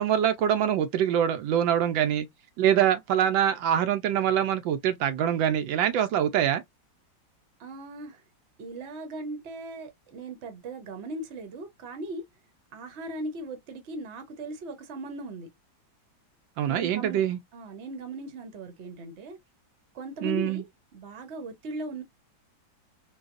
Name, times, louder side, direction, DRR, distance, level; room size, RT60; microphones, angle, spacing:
voice 1, 0.0-2.3 2.6-6.6 16.6-17.4 20.2-20.6, right 9 dB, 80° right, 1.3 m, -24 dB
voice 2, 7.6-8.2 8.6-12.2 12.7-15.5 16.7-17.2 17.5-19.4 19.9-20.6 20.9-22.0, right 2 dB, 50° right, 0.9 m, -38 dB
3.9 x 2.3 x 2.4 m
omnidirectional pair, 2.0 m